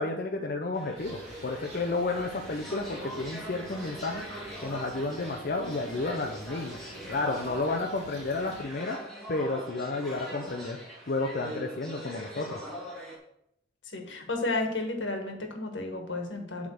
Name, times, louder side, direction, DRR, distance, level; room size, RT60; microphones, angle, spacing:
voice 1, 0.0-4.2 4.6-6.8 7.1-9.0 9.3-10.8 11.1-12.6, left 3 dB, 50° left, 2 dB, 0.6 m, -31 dB
sound 1, 0.7-13.2, equal, ahead, 1.9 m, -42 dB
sound 2, 0.9-8.6, right 1 dB, 35° right, 2.8 m, -48 dB
voice 2, 13.8-16.7, left 2 dB, 80° left, 3 dB, 1.5 m, -32 dB
7.8 x 3.7 x 6.3 m, 0.75 s
head